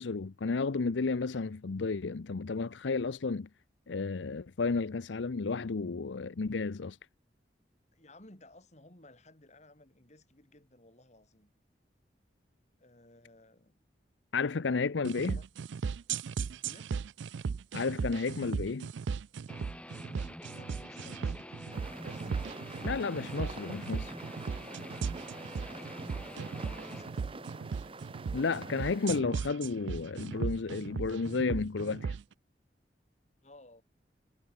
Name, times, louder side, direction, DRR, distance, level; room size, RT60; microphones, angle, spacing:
voice 1, 0.0-3.5 3.9-7.0 14.3-15.4 17.7-18.9 22.8-24.2 28.3-32.2, left 4 dB, 85° left, 0.6 m, -32 dB
voice 2, 7.9-11.5 12.8-13.8 14.9-15.4 16.5-17.0 20.4-22.2 25.6-27.7 33.4-33.8, left 1 dB, 40° left, 3.3 m, -57 dB
sound 1, 15.0-32.2, right 5 dB, 80° right, 0.4 m, -37 dB
Guitar, 19.5-27.1, left 1 dB, 5° left, 3.3 m, -47 dB
sound 2, 21.7-29.2, right 2 dB, 30° right, 1.3 m, -46 dB
head